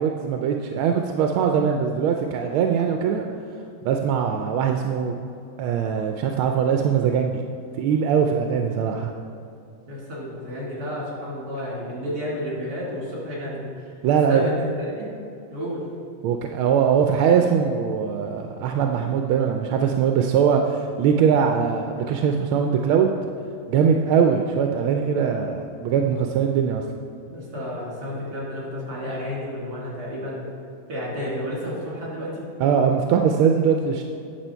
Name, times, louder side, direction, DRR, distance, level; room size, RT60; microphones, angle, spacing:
voice 1, 0.0-3.3 3.8-5.2 5.6-7.4 7.8-9.1 14.0-14.4 16.2-23.1 23.7-26.8 32.6-34.0, right 7 dB, 90° right, 3 dB, 1.4 m, -21 dB
voice 2, 9.9-13.7 14.3-15.1 15.5-15.8 27.3-30.4 30.9-32.5, equal, 55° right, -6 dB, 3.2 m, -31 dB
8.9 x 6.9 x 4.4 m, 2.6 s
omnidirectional pair, 2.2 m